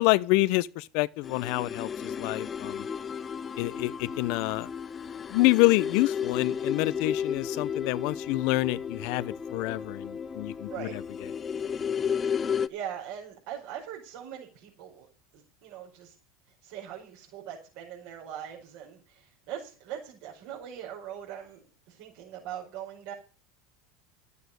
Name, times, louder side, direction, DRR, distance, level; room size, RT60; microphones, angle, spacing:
voice 1, 0.0-2.9 3.6-4.7 5.3-11.0, left 20 dB, 65° left, 0.6 m, -27 dB
sound 1, 1.2-12.7, left 7 dB, 25° left, 0.6 m, -33 dB
voice 2, 12.3-15.1 15.3-16.1 16.6-21.6 21.9-23.1, right 9 dB, 65° right, 5.0 m, -41 dB
12.5 x 8.3 x 6.8 m
supercardioid pair, 115°, 0 cm